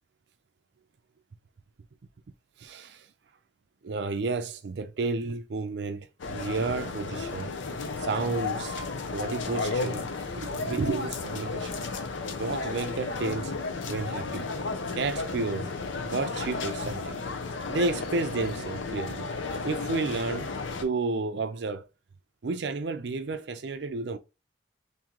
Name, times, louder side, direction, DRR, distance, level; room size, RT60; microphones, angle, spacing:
voice 1, 2.6-3.1 3.8-7.5 8.0-10.1 10.3-11.8 12.4-13.6 13.9-14.5 14.9-15.7 16.0-17.3 17.7-19.3 19.6-20.5 20.8-21.9 22.4-24.2, right 3 dB, 65° right, 0.4 m, -31 dB
sound 1, 6.2-20.8, left 3 dB, 80° left, 0.6 m, -33 dB
3.7 x 2.7 x 3.0 m
head